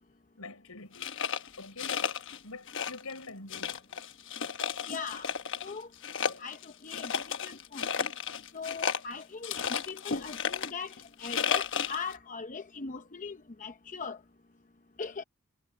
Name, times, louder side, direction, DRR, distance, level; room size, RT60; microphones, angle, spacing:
voice 1, 0.4-1.2 1.6-2.0 2.4-3.8, left 3 dB, 75° left, 5.3 m, -45 dB
sound 1, 0.9-2.4 2.7-3.2 3.5-5.7 6.0-12.1, left 7 dB, 60° left, 1.2 m, -33 dB
voice 2, 4.9-5.3 5.6-5.9 6.4-8.1 8.5-14.2 15.0-15.2, left 5 dB, 35° left, 0.7 m, -40 dB
head